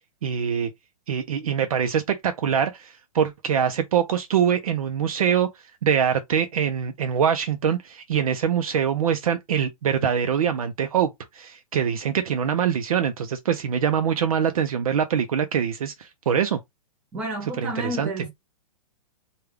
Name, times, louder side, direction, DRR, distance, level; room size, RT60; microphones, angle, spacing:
voice 1, 0.2-0.7 1.1-5.5 5.8-16.6 17.6-18.1, right 8 dB, 65° right, 0.5 m, -24 dB
voice 2, 17.1-18.3, right 1 dB, 5° right, 0.6 m, -31 dB
3.3 x 2.3 x 3.4 m
hypercardioid pair, 180°, 19 cm